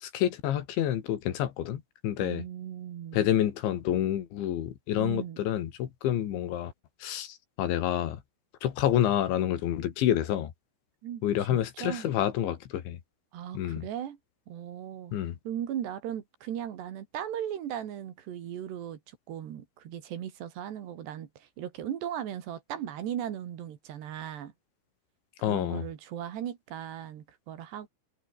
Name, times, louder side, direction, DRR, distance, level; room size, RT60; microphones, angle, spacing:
voice 1, 0.0-2.4 3.1-6.7 7.0-8.2 8.6-10.5 11.2-13.0 13.5-13.9 15.1-15.4 25.4-25.9, left 11 dB, 70° left, 4.2 m, -28 dB
voice 2, 2.2-3.3 5.0-5.4 11.0-12.1 13.3-14.2 14.5-15.1 15.5-24.5 25.5-27.9, right 10 dB, 60° right, 4.0 m, -37 dB
omnidirectional pair, 5.9 m